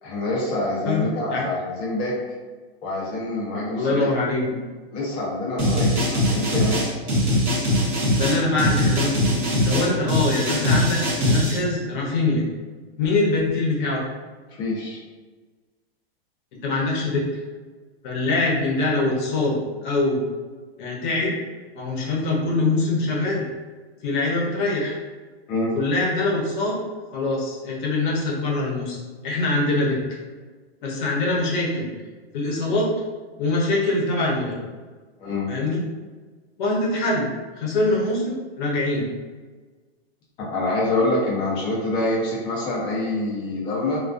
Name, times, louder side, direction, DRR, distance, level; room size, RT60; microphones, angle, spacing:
voice 1, 0.0-2.2 2.8-4.1 4.9-7.0 14.6-15.0 25.5-25.8 35.2-35.5 40.4-44.0, left 2 dB, 15° left, -5 dB, 0.3 m, -26 dB
voice 2, 0.9-1.4 3.7-4.6 8.1-12.4 13.0-14.0 16.6-17.3 18.0-20.2 20.8-21.4 21.7-23.4 24.0-25.0 25.7-26.8 27.1-30.2 30.8-31.9 32.3-32.9 33.4-34.6 35.5-35.8 36.6-37.3 37.5-39.1, left 2 dB, 50° left, -2 dB, 0.7 m, -23 dB
sound 1, 5.6-11.6, equal, 30° right, 0.6 m, -21 dB
2.3 x 2.2 x 2.3 m, 1.4 s
hypercardioid pair, 150°, 31 cm